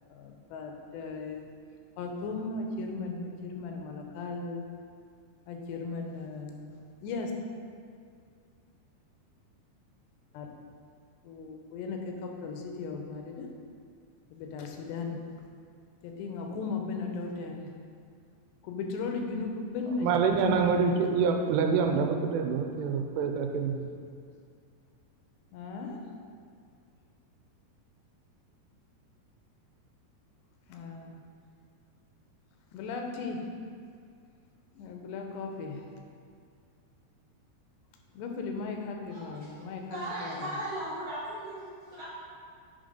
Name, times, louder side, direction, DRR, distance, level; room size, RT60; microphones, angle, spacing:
voice 1, 0.1-1.4 2.0-4.7 5.5-6.8 7.0-7.3 10.3-10.5 11.2-13.5 14.3-15.2 16.0-17.7 18.6-21.1 25.5-26.0 30.7-31.2 32.7-33.5 34.8-35.9 38.2-40.6, left 4 dB, 85° left, 2 dB, 2.9 m, -37 dB
voice 2, 20.0-23.9, right 5 dB, 90° right, 4 dB, 2.7 m, -26 dB
voice 3, 39.9-42.1, right 1 dB, 65° right, -9 dB, 1.5 m, -37 dB
9.3 x 3.8 x 5.1 m, 2.2 s
omnidirectional pair, 4.7 m